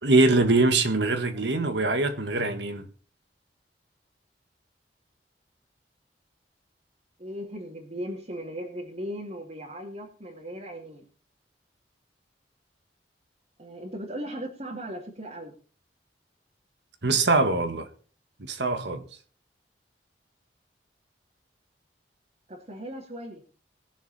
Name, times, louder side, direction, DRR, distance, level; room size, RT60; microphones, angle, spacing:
voice 1, 0.0-2.8 17.0-17.9 18.4-19.0, right 2 dB, 80° right, 1.6 m, -23 dB
voice 2, 7.2-11.1 13.6-15.5 22.5-23.4, equal, 40° right, 2.6 m, -37 dB
20.5 x 7.2 x 4.2 m
head